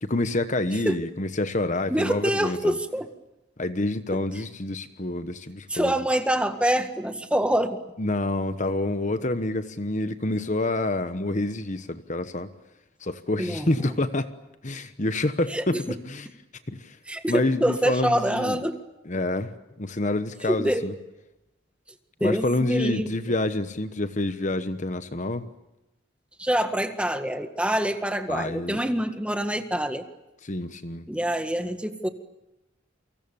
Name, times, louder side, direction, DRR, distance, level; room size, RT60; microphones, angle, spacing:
voice 1, 0.0-2.8 3.6-5.9 8.0-12.5 13.0-14.3 14.6-16.3 16.7-17.0 17.3-18.6 19.1-19.5 19.8-20.9 22.2-25.5 28.3-28.8 30.4-31.0, left 2 dB, 40° left, 11 dB, 1.1 m, -27 dB
voice 2, 1.9-3.1 5.7-7.8 13.4-13.9 15.5-16.0 17.1-18.8 20.4-20.9 22.2-23.1 26.4-30.0 31.1-32.1, right 1 dB, 5° right, 7 dB, 1.8 m, -26 dB
29.0 x 25.0 x 7.1 m, 0.96 s
head